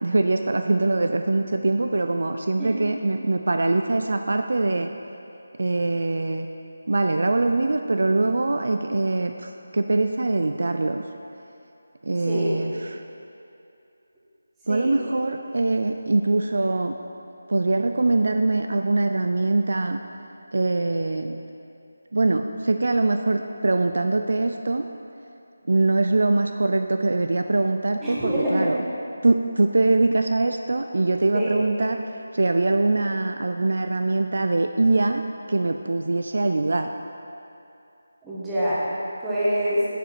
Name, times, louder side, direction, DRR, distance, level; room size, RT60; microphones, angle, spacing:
voice 1, 0.0-4.9 5.6-6.5 6.9-11.0 12.0-13.0 14.7-17.0 17.5-20.0 20.5-21.4 22.1-24.9 25.7-28.8 29.2-32.0 32.3-35.2 35.5-36.9, right 2 dB, 60° right, 6 dB, 0.3 m, -23 dB
voice 2, 28.0-28.7 31.3-31.5 38.2-38.8 39.2-39.9, equal, 10° right, -11 dB, 1.4 m, -25 dB
7.1 x 6.8 x 4.4 m, 2.6 s
figure-of-eight pair, 160°, 0 cm